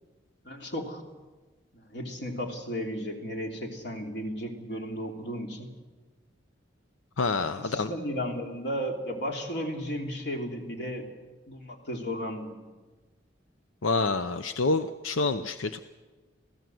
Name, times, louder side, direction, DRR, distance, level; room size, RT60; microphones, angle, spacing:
voice 1, 0.4-1.0 1.7-5.7 7.5-11.1 11.5-12.6, equal, 55° left, 3 dB, 3.1 m, -34 dB
voice 2, 7.2-7.9 13.8-15.8, left 3 dB, 85° left, 10 dB, 0.7 m, -27 dB
26.5 x 17.0 x 7.8 m, 1.3 s
head